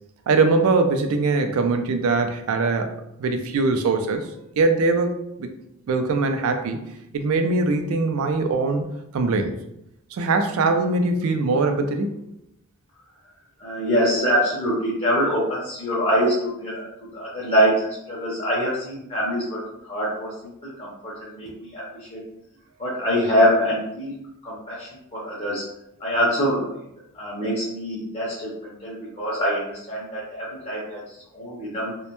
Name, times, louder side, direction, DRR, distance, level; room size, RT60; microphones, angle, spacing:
voice 1, 0.3-2.9 3.2-4.3 4.6-5.5 5.9-6.8 7.1-8.9 9.1-9.6 10.1-12.2, right 3 dB, 70° right, 6 dB, 0.3 m, -22 dB
voice 2, 13.6-16.9 17.1-22.2 22.8-25.6 26.0-26.7 27.1-31.9, equal, 25° left, -7 dB, 0.6 m, -24 dB
2.1 x 2.1 x 2.9 m, 0.81 s
head